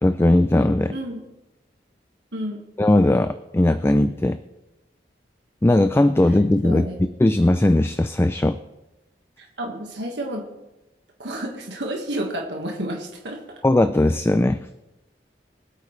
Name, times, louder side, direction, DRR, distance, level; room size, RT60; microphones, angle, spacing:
voice 1, 0.0-1.0 2.8-4.4 5.6-6.9 7.2-8.6 13.6-14.6, left 1 dB, 15° left, 11 dB, 0.3 m, -18 dB
voice 2, 0.9-1.2 2.3-2.6 6.6-7.0 9.4-10.4 11.2-13.4, right 1 dB, 80° right, 1 dB, 1.7 m, -30 dB
24.0 x 8.3 x 3.3 m, 0.99 s
head